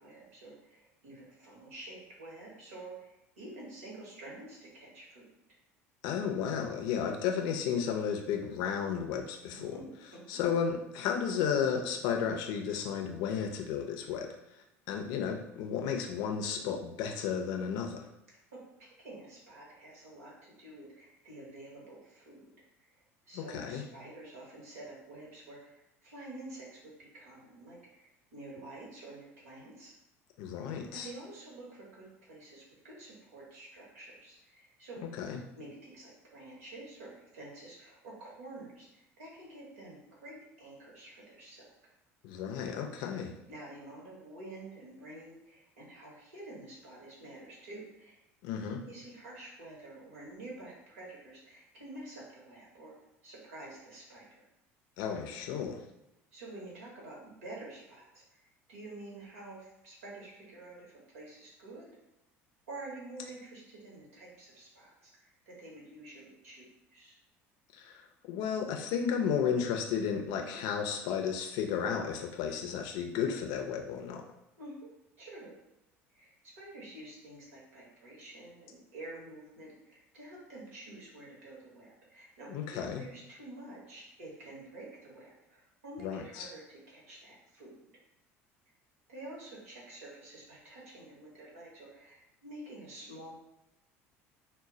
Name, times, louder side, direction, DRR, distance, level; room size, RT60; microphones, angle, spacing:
voice 1, 0.0-5.3 9.5-10.4 18.5-22.5 23.3-30.0 30.6-35.0 35.6-41.6 43.5-48.2 48.9-53.0 53.2-54.4 56.3-58.2 58.7-61.9 62.7-67.1 74.6-74.9 75.2-75.5 76.1-87.9 89.1-93.3, right 2 dB, 80° right, -4 dB, 0.9 m, -49 dB
voice 2, 6.0-9.8 10.3-14.3 14.9-18.0 23.3-23.8 30.4-31.1 35.2-35.4 42.2-43.3 48.4-48.8 55.0-55.8 67.7-68.0 68.3-74.2 82.5-83.0 86.0-86.5, left 7 dB, 65° left, 3 dB, 0.4 m, -33 dB
2.1 x 2.0 x 3.7 m, 0.88 s
hypercardioid pair, 70°, 8 cm